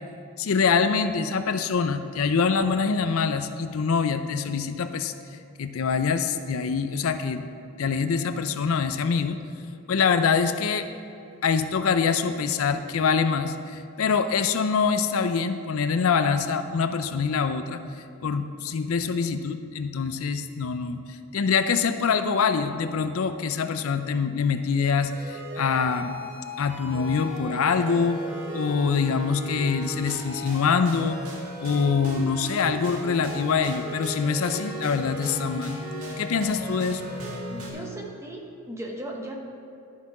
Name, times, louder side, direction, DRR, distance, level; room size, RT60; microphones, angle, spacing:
voice 1, 0.4-5.1 5.6-7.4 7.8-9.4 9.9-10.9 11.4-17.8 18.2-21.0 21.3-26.1 26.6-28.2 28.5-31.2 31.6-35.8 36.2-37.0, left 5 dB, 80° left, 9 dB, 0.5 m, -24 dB
sound 1, 24.8-37.7, left 1 dB, 80° right, 2.0 m, -36 dB
voice 2, 37.5-39.3, right 1 dB, 15° right, 0 dB, 0.9 m, -37 dB
11.5 x 5.6 x 4.8 m, 2.6 s
head